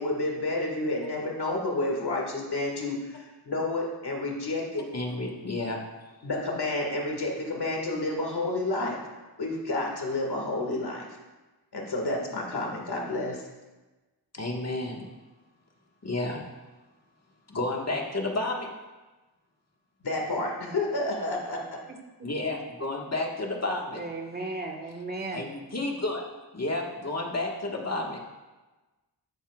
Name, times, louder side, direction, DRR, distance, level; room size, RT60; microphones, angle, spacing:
voice 1, 0.0-4.9 6.2-9.0 9.4-11.1 11.7-13.4 20.0-21.8, left 2 dB, 65° left, -1 dB, 2.0 m, -30 dB
voice 2, 4.9-5.8 14.3-15.1 16.0-16.4 17.5-18.7 22.2-24.0 25.3-26.2 26.5-28.2, left 2 dB, 40° left, 0 dB, 1.6 m, -31 dB
voice 3, 24.0-25.4, right 2 dB, 25° right, 0 dB, 1.5 m, -35 dB
14.0 x 9.9 x 2.4 m, 1.2 s
wide cardioid pair, 100°, 41 cm